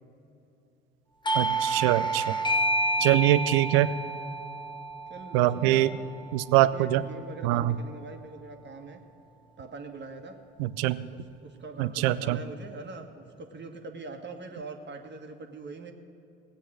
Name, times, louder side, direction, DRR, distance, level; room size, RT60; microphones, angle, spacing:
Doorbell, 1.2-6.5, right 1 dB, 15° left, 1.0 m, -29 dB
voice 1, 1.3-2.3 3.0-3.9 5.3-5.9 6.3-7.0 7.4-7.7 10.6-11.1 11.8-12.4, right 14 dB, 75° right, 16 dB, 0.6 m, -23 dB
voice 2, 3.0-3.3 5.1-5.9 6.6-9.0 9.6-10.4 11.1-15.9, right 3 dB, 35° right, 4 dB, 1.7 m, -43 dB
17.0 x 8.2 x 6.3 m, 2.8 s
hypercardioid pair, 60°, 30 cm